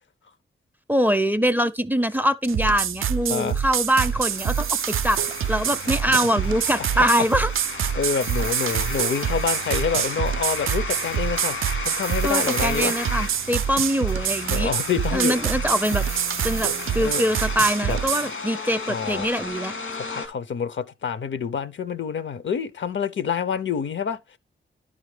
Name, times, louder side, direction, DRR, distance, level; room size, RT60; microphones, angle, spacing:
voice 1, 0.9-5.2 5.5-7.5 12.2-14.7 15.1-16.0 16.4-19.7, equal, 10° right, 0.4 m, -23 dB
sound 1, 2.4-18.3, right 9 dB, 85° right, 0.4 m, -26 dB
sound 2, 3.2-20.3, left 4 dB, 85° left, 1.8 m, -34 dB
voice 2, 5.9-6.2 6.8-7.3 7.9-12.9 14.5-15.3 17.0-17.2 17.8-18.0 18.9-19.3 19.9-24.2, left 6 dB, 65° left, 0.6 m, -27 dB
11.0 x 5.0 x 3.2 m
wide cardioid pair, 135°, 20 cm